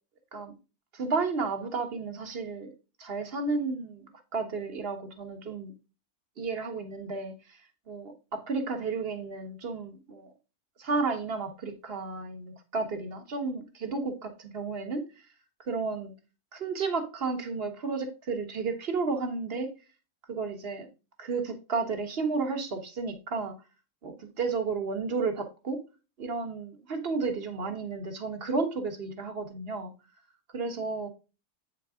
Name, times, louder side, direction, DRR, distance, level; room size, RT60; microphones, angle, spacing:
voice 1, 0.9-2.7 3.0-5.7 6.4-7.6 7.9-10.3 10.8-15.0 15.6-16.1 16.5-19.7 20.3-20.9 21.2-23.5 24.0-25.8 26.2-29.9 30.5-31.1, right 4 dB, 40° right, 1.5 m, -32 dB
8.4 x 4.7 x 3.6 m
omnidirectional pair, 1.6 m